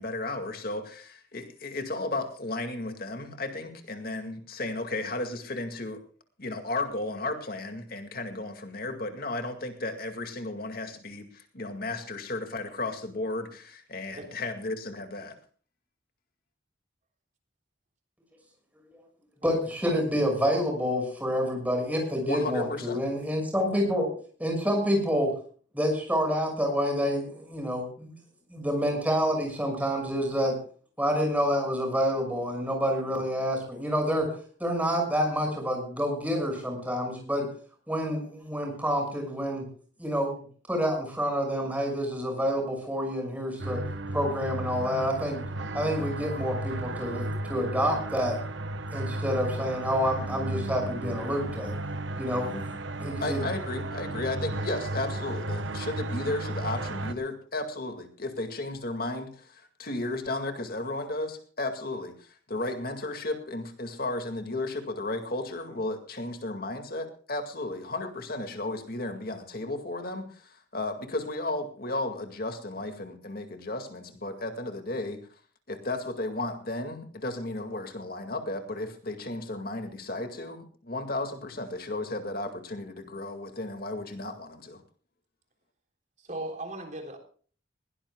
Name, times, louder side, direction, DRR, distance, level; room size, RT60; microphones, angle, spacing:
voice 1, 0.0-6.0 6.4-15.4 22.3-23.0 52.5-52.6 53.2-75.2 75.7-84.8, left 2 dB, 50° left, 6 dB, 2.2 m, -34 dB
voice 2, 19.4-24.1 24.4-25.3 25.7-28.1 28.5-30.6 31.0-34.3 34.6-37.5 37.9-39.6 40.0-40.3 40.7-43.8 44.1-45.4 45.7-48.4 48.9-51.8 52.2-52.6 53.0-53.4, equal, 10° right, 3 dB, 6.2 m, -28 dB
sound 1, 43.6-57.1, right 1 dB, 85° right, 1.3 m, -34 dB
voice 3, 86.3-87.2, right 2 dB, 40° right, 3 dB, 3.6 m, -37 dB
21.0 x 18.0 x 2.3 m, 0.43 s
head